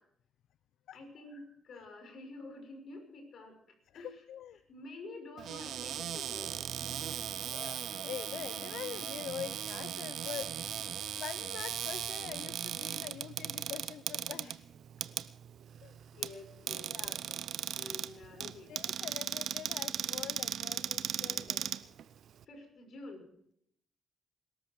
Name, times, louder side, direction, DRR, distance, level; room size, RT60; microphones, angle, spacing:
voice 1, 0.9-4.2 4.7-6.5 14.3-14.4 16.1-17.4 17.7-18.7 22.4-23.3, left 2 dB, 60° left, 5 dB, 6.3 m, -49 dB
voice 2, 3.9-4.6 6.9-7.1 7.5-14.7 15.8-16.0 16.9-17.2 18.3-21.7, left 10 dB, 75° left, 16 dB, 0.6 m, -45 dB
Cupboard open or close, 5.4-22.4, right 10 dB, 70° right, 0.8 m, -38 dB
21.0 x 13.5 x 4.8 m, 0.67 s
cardioid pair, 90°, 0 cm